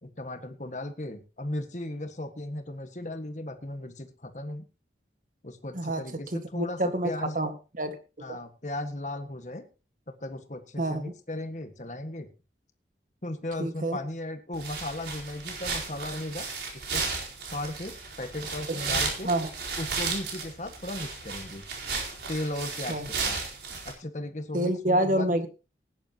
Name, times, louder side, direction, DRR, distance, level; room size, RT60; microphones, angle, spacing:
voice 1, 0.0-4.6 5.4-7.4 8.2-9.7 10.1-12.3 13.2-16.5 16.7-17.0 17.5-19.3 19.8-21.6 22.3-23.4 23.7-25.4, left 1 dB, 40° left, 7 dB, 1.6 m, -36 dB
voice 2, 6.5-7.5 7.8-8.4 10.8-11.1 13.6-14.0 18.7-19.0 19.2-19.5 22.9-23.1 24.5-25.5, right 1 dB, 50° right, 8 dB, 1.7 m, -28 dB
sound 1, 14.5-23.9, right 4 dB, 70° right, 4.6 m, -34 dB
19.5 x 10.5 x 2.9 m, 0.32 s
head